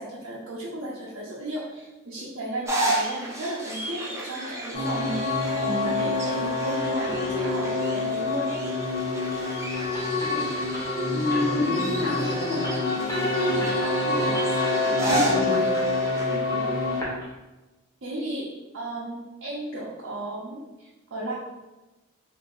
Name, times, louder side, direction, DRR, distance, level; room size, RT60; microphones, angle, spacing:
voice 1, 0.0-8.6 11.3-11.4 16.3-17.1 18.0-18.5 18.7-21.3, right 1 dB, 65° right, -7 dB, 0.7 m, -35 dB
sound 1, 2.6-16.4, right 1 dB, 15° right, 0.5 m, -33 dB
sound 2, 4.7-17.0, left 2 dB, 50° left, 1.1 m, -26 dB
sound 3, 9.7-17.2, left 1 dB, 15° left, 0.8 m, -40 dB
voice 2, 10.2-10.5 11.1-14.5 14.8-15.7, left 2 dB, 70° left, -7 dB, 1.3 m, -30 dB
2.9 x 2.7 x 3.8 m, 1.1 s
head